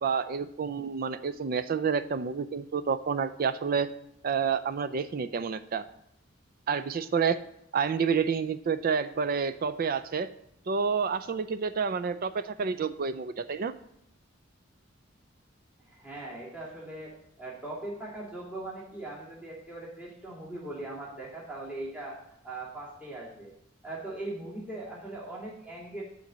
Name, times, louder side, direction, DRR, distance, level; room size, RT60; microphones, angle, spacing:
voice 1, 0.0-3.9 4.2-5.9 6.7-7.4 7.7-10.3 10.7-13.7, right 6 dB, 45° right, 13 dB, 0.4 m, -29 dB
voice 2, 15.9-22.2 22.4-23.5 23.8-26.0, right 2 dB, 5° right, -5 dB, 2.3 m, -40 dB
10.5 x 3.9 x 7.3 m, 0.78 s
head